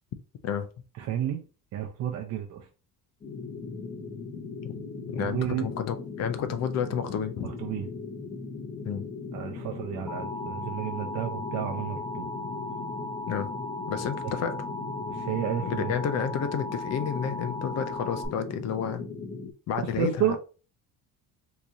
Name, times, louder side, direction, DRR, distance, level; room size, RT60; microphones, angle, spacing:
voice 1, 1.0-1.4 1.7-2.7 5.2-5.7 7.6-7.9 9.3-12.3 15.1-15.9 20.0-20.4, right 10 dB, 55° right, 0.6 m, -31 dB
sound 1, 3.2-19.5, left 4 dB, 25° left, 0.8 m, -38 dB
voice 2, 5.1-7.5 8.9-9.1 13.3-13.5 13.9-14.6 15.7-19.0 19.7-20.4, left 7 dB, 50° left, 0.5 m, -30 dB
Alarm, 10.1-18.3, left 2 dB, ahead, 0.5 m, -37 dB
3.0 x 2.6 x 3.6 m
cardioid pair, 130°, 34 cm